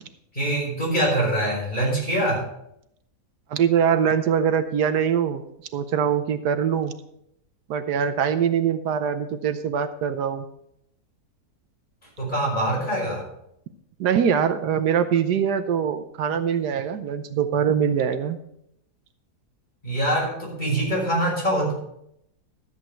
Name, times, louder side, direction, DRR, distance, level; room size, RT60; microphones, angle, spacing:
voice 1, 0.3-2.5 12.2-13.3 19.8-21.7, right 1 dB, 25° left, -4 dB, 5.4 m, -24 dB
voice 2, 3.5-5.4 5.7-6.9 7.7-10.5 14.0-18.4, right 8 dB, 80° right, 10 dB, 1.3 m, -23 dB
13.0 x 8.6 x 4.5 m, 0.76 s
omnidirectional pair, 1.8 m